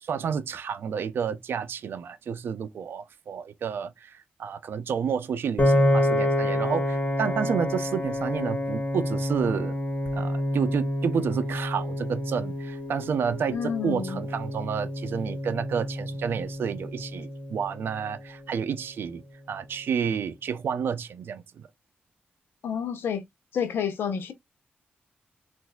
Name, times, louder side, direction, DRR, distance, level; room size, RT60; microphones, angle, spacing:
voice 1, 0.0-9.8 10.1-19.2 19.5-21.7, right 7 dB, 80° right, 0.5 m, -30 dB
Piano, 5.6-17.8, left 1 dB, 35° left, 1.5 m, -28 dB
voice 2, 13.5-14.2 22.6-23.2 23.5-24.3, left 7 dB, 85° left, 0.8 m, -29 dB
4.1 x 2.6 x 2.2 m
cardioid pair, 75°, 4 cm